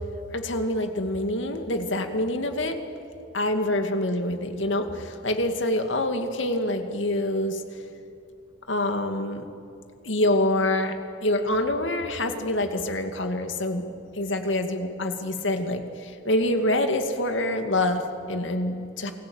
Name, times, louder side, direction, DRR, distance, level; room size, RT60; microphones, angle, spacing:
voice 1, 0.3-2.8 3.3-7.6 8.7-9.5 10.0-13.9 14.1-19.1, left 1 dB, 85° left, 6 dB, 2.3 m, -26 dB
28.0 x 20.5 x 8.9 m, 2.7 s
head